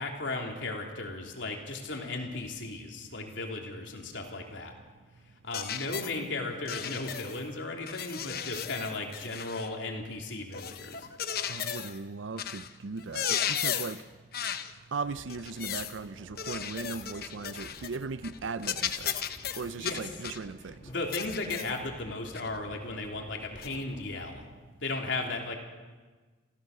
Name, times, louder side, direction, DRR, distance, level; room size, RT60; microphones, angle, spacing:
voice 1, 0.0-4.7 5.4-11.1 19.8-20.0 20.8-24.5 24.8-25.5, left 2 dB, 75° left, 3.4 m, -36 dB
sound 1, 5.5-6.2 6.7-7.4 7.9-9.7 10.5-12.0 12.4-12.7 13.0-14.0 14.3-14.7 15.3-16.0 16.4-18.0 18.2-18.4 18.6-20.4 21.1-21.8 22.3-22.5 23.6-23.7, left 9 dB, 50° left, 1.0 m, -35 dB
voice 2, 11.5-14.0 14.9-19.1 19.6-20.8, right 4 dB, 85° right, 0.6 m, -38 dB
sound 2, 15.0-24.5, equal, 25° left, 2.5 m, -53 dB
27.0 x 15.5 x 6.7 m
head